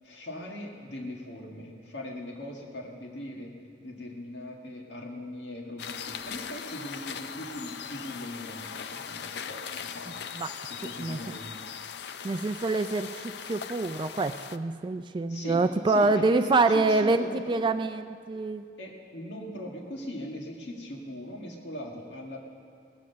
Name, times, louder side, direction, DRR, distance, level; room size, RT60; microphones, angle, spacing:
voice 1, 0.0-3.5 3.8-10.2 10.6-11.6 15.3-17.6 18.8-22.4, left 1 dB, 85° left, 0 dB, 1.9 m, -40 dB
Steps in the forest, 5.8-14.6, left 7 dB, 65° left, 0.5 m, -40 dB
voice 2, 12.2-18.6, right 3 dB, 25° right, 9 dB, 0.3 m, -26 dB
19.5 x 7.4 x 6.8 m, 2.3 s
head